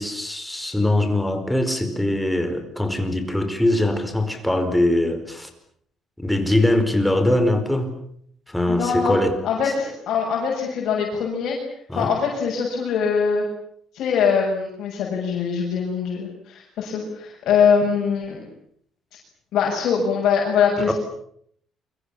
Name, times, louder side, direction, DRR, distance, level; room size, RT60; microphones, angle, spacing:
voice 1, 0.0-5.5 6.2-7.9 8.5-9.4 11.9-12.1 20.9-21.0, left 1 dB, 5° left, 4.7 m, -22 dB
voice 2, 8.7-9.2 9.4-11.6 11.9-13.4 13.9-18.5 19.5-20.9, left 6 dB, 65° left, 7.2 m, -22 dB
29.5 x 24.0 x 7.3 m
cardioid pair, 130°, 0 cm